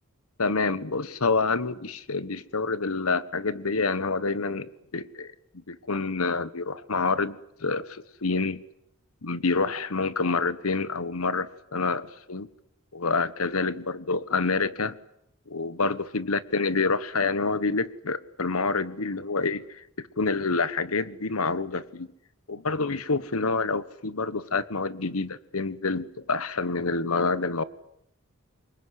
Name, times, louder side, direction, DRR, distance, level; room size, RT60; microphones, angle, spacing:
voice 1, 0.4-5.3 5.7-8.6 9.2-12.5 12.9-15.0 15.5-22.1 22.5-27.6, left 4 dB, 85° left, 16 dB, 1.3 m, -27 dB
25.5 x 22.5 x 9.9 m, 0.76 s
head